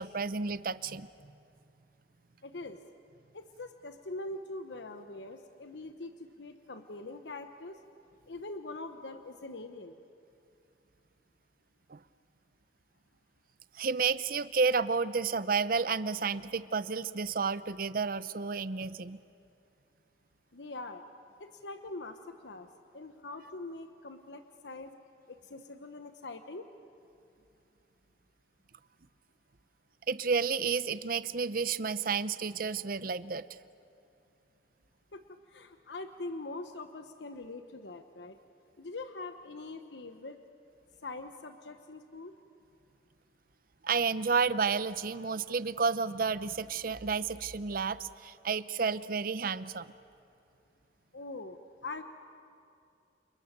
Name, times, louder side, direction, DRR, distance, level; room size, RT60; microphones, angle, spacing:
voice 1, 0.0-1.3 11.9-12.0 13.7-19.2 30.1-33.4 43.8-49.9, right 5 dB, 50° right, 15 dB, 0.7 m, -31 dB
voice 2, 2.4-2.8 3.3-7.8 8.3-10.0 20.5-21.0 21.4-24.9 25.3-26.7 35.1-35.2 35.5-38.4 38.8-40.4 41.0-42.3 51.1-52.0, left 2 dB, 80° left, 8 dB, 1.0 m, -43 dB
29.5 x 28.5 x 6.8 m, 2.5 s
head